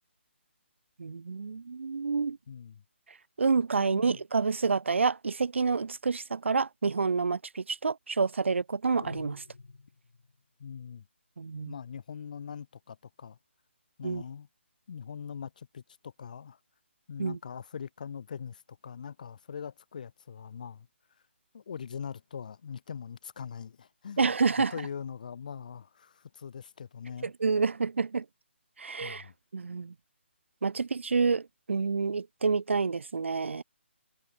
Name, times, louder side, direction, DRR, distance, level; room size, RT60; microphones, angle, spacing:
voice 1, 1.0-2.4 3.4-9.4 11.4-11.7 14.0-14.2 17.2-17.4 24.2-24.7 27.2-28.2 28.8-29.2 29.5-29.9 30.6-33.6, right 4 dB, 75° right, 1.0 m, -28 dB
voice 2, 2.5-2.8 3.8-4.2 10.6-11.0 11.7-13.4 14.0-14.5 14.9-16.6 17.1-20.9 21.5-24.3 24.7-27.3 29.0-29.3, left 7 dB, 40° left, 1.3 m, -42 dB
sound 1, 8.9-10.4, left 4 dB, 90° left, 5.8 m, -48 dB
hypercardioid pair, 170°, 7 cm